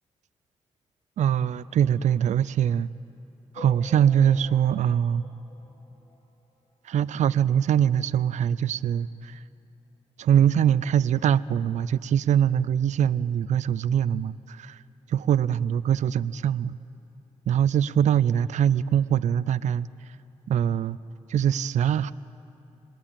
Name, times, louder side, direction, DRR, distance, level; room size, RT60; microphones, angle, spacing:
voice 1, 1.2-2.9 3.5-5.2 6.8-9.4 10.2-14.8 15.1-16.8 17.5-20.2 20.5-21.0 21.3-22.1, right 9 dB, 75° right, 17 dB, 0.4 m, -23 dB
sound 1, 3.6-6.4 6.9-7.0 7.2-7.3 7.6-7.7 8.6-8.7 9.1-9.2, left 1 dB, 50° left, 3.4 m, -47 dB
21.5 x 20.0 x 8.9 m, 2.7 s
cardioid pair, 70°, 12 cm